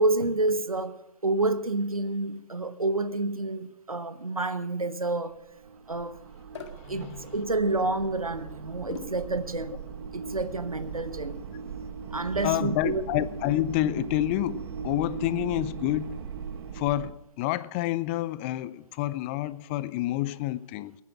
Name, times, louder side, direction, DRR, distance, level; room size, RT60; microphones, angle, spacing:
voice 1, 0.0-5.4 5.9-6.2 6.9-9.8 10.1-11.4 12.1-13.0, right 2 dB, 85° right, 1.0 m, -28 dB
sound 1, 5.3-17.1, right 6 dB, 45° right, 1.2 m, -38 dB
sound 2, 6.5-6.8 8.9-9.3, left 5 dB, 50° left, 2.0 m, -40 dB
voice 2, 6.9-7.2 12.4-16.2 16.7-21.0, left 15 dB, 20° left, 0.4 m, -28 dB
18.5 x 9.5 x 6.1 m
figure-of-eight pair, 120°, 18 cm